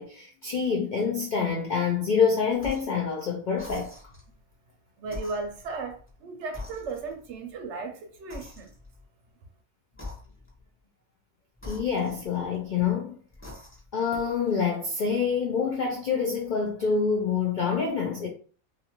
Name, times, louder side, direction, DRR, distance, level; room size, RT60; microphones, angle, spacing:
voice 1, 0.0-3.9 11.6-13.2 13.9-18.3, left 6 dB, 80° left, 0.4 m, -26 dB
sound 1, 2.6-3.0 3.5-4.3 5.0-6.2 6.5-7.3 8.3-9.0 9.9-10.6 11.6-12.7 13.3-14.0, left 2 dB, 15° left, 0.6 m, -43 dB
voice 2, 5.0-8.7, right 3 dB, 65° right, 0.8 m, -36 dB
2.6 x 2.4 x 2.9 m
omnidirectional pair, 1.5 m